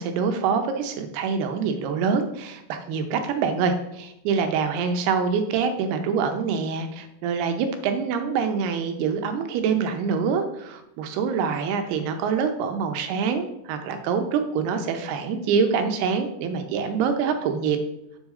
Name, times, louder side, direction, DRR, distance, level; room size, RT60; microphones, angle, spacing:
voice 1, 0.0-17.8, right 6 dB, 85° right, 6 dB, 2.9 m, -25 dB
7.3 x 6.3 x 3.7 m, 0.85 s
omnidirectional pair, 4.5 m